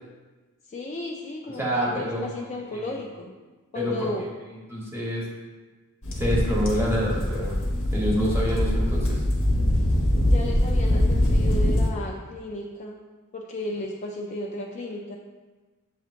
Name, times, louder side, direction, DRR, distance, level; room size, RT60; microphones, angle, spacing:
voice 1, 0.7-3.3 3.7-4.2 10.2-13.0 13.3-15.2, left 1 dB, 30° left, -1 dB, 0.3 m, -34 dB
voice 2, 1.6-2.3 2.7-3.0 3.7-4.1 4.7-5.2 6.2-7.6 7.9-9.2, equal, 10° right, -5 dB, 1.0 m, -27 dB
sound 1, 6.0-11.9, left 1 dB, 65° left, 0.9 m, -23 dB
7.7 x 2.8 x 2.5 m, 1.3 s
head